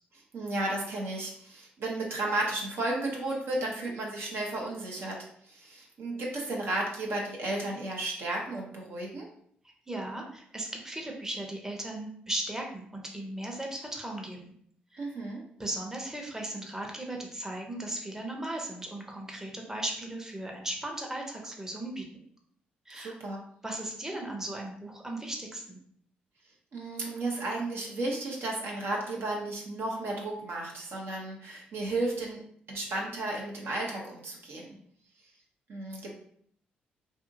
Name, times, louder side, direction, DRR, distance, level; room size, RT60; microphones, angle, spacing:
voice 1, 0.3-5.2 5.4-9.3 15.0-15.4 22.9-23.4 26.7-32.4 32.7-34.8 35.7-36.1, right 2 dB, 60° right, -2 dB, 0.7 m, -33 dB
voice 2, 9.9-14.5 14.9-15.0 15.6-22.0 22.9-23.1 23.6-25.8, right 1 dB, 10° right, 0 dB, 0.7 m, -37 dB
2.6 x 2.6 x 2.6 m, 0.63 s
hypercardioid pair, 45°, 4 cm